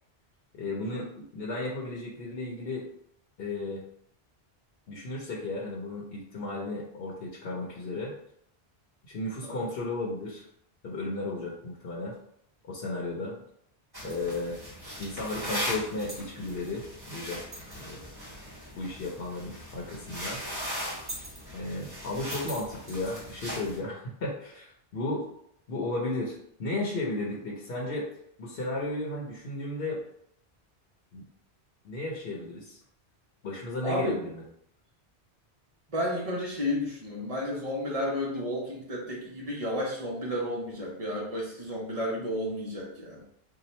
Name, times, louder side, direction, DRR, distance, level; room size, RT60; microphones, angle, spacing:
voice 1, 0.5-1.1 1.3-2.9 3.4-3.8 4.9-8.1 9.0-10.4 10.8-12.1 12.7-13.3 14.0-14.6 15.0-17.4 17.7-18.1 18.8-20.4 21.5-25.3 25.7-28.1 28.4-30.0 31.1-31.2 31.8-32.8 33.4-34.4, left 2 dB, 70° left, -3 dB, 0.9 m, -34 dB
sound 1, 13.9-23.8, equal, 20° right, 1.3 m, -39 dB
voice 2, 33.8-34.2 35.9-43.2, left 1 dB, 35° right, -4 dB, 0.9 m, -32 dB
2.8 x 2.3 x 4.1 m, 0.70 s
omnidirectional pair, 1.0 m